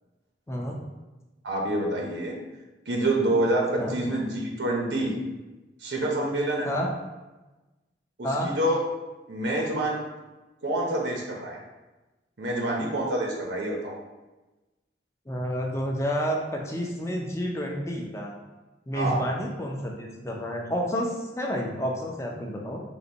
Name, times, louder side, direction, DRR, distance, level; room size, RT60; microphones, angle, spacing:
voice 1, 1.4-2.3 2.9-5.1 5.8-6.8 8.2-8.8 9.3-10.0 10.6-11.6 12.4-14.0 18.9-19.2, right 1 dB, 85° right, -1 dB, 0.8 m, -27 dB
voice 2, 15.3-18.3 18.9-22.8, equal, 15° left, 0 dB, 0.5 m, -30 dB
3.9 x 2.6 x 4.0 m, 1.1 s
head